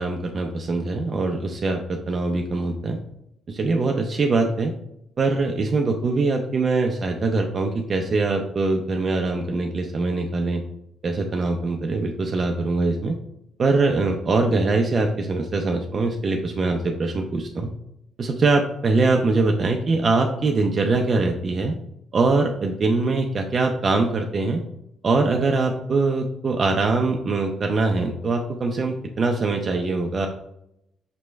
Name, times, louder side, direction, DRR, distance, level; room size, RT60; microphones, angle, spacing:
voice 1, 0.0-3.0 3.5-4.7 5.2-10.6 11.0-13.2 13.6-17.7 18.2-21.7 22.1-24.6 25.0-30.3, right 3 dB, 40° right, 2 dB, 0.4 m, -23 dB
5.9 x 3.0 x 2.2 m, 0.79 s
cardioid pair, 90°, 0 cm